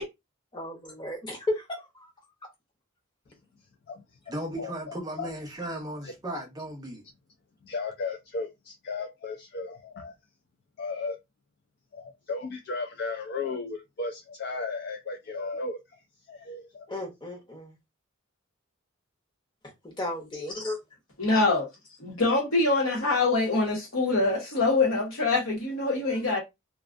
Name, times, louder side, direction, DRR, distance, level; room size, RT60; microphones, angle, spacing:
voice 1, 0.5-2.1 16.9-17.8 19.8-20.8, left 1 dB, 20° left, 0.8 m, -34 dB
voice 2, 4.3-7.0, right 1 dB, 20° right, 0.6 m, -36 dB
voice 3, 7.6-10.1 10.8-11.2 11.9-16.0 16.3-16.9, left 3 dB, 50° left, 0.3 m, -35 dB
voice 4, 21.2-21.7 22.0-26.4, left 3 dB, 80° left, 1.1 m, -24 dB
2.4 x 2.3 x 2.4 m
head